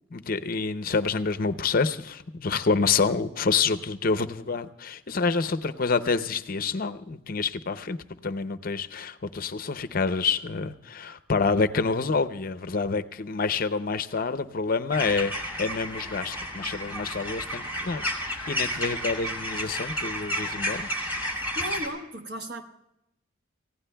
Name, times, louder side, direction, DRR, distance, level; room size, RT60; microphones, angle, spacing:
voice 1, 0.1-8.0 8.2-20.9, left 4 dB, 45° left, 0.6 m, -27 dB
sound 1, 14.9-21.9, equal, 10° right, 2.7 m, -32 dB
voice 2, 21.5-22.6, equal, 55° right, 1.3 m, -35 dB
28.5 x 16.0 x 2.2 m
head